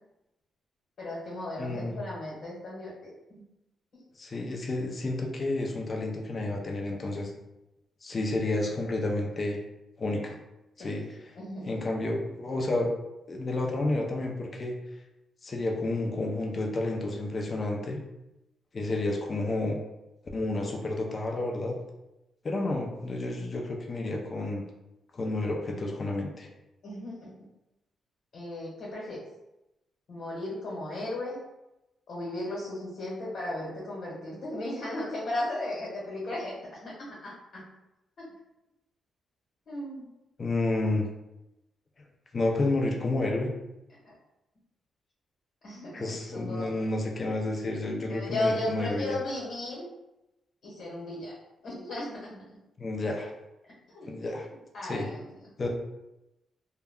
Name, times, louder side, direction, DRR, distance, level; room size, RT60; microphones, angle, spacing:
voice 1, 1.0-3.4 3.9-4.0 10.8-10.9 11.3-11.8 26.8-27.3 28.3-29.2 30.1-31.4 32.1-36.5 36.8-37.7 39.7-40.1 44.0-44.1 45.6-46.9 48.1-49.8 50.6-51.3 51.6-52.4 53.9-54.1 54.7-55.3, left 1 dB, 65° left, -5 dB, 1.1 m, -35 dB
voice 2, 1.6-2.0 4.2-7.3 8.0-9.6 10.0-10.3 10.8-11.0 11.7-12.9 13.3-14.8 15.4-18.0 18.7-19.8 20.3-21.8 22.4-24.6 25.1-26.5 40.4-41.1 42.3-43.5 45.9-49.2 52.8-53.3 54.1-54.5 54.8-55.1 55.6-55.7, left 2 dB, 35° left, 1 dB, 0.5 m, -30 dB
2.3 x 2.1 x 3.5 m, 0.94 s
cardioid pair, 125°, 0 cm